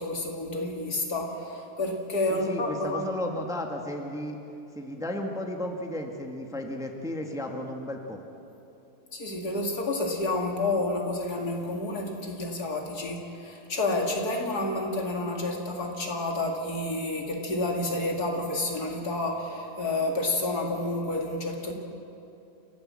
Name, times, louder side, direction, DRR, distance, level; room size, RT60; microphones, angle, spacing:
voice 1, 0.0-3.1 9.1-21.7, left 2 dB, 70° left, 1 dB, 2.9 m, -29 dB
voice 2, 2.3-4.4 4.7-8.2, left 1 dB, ahead, 2 dB, 1.5 m, -34 dB
28.5 x 14.0 x 7.6 m, 2.8 s
omnidirectional pair, 1.7 m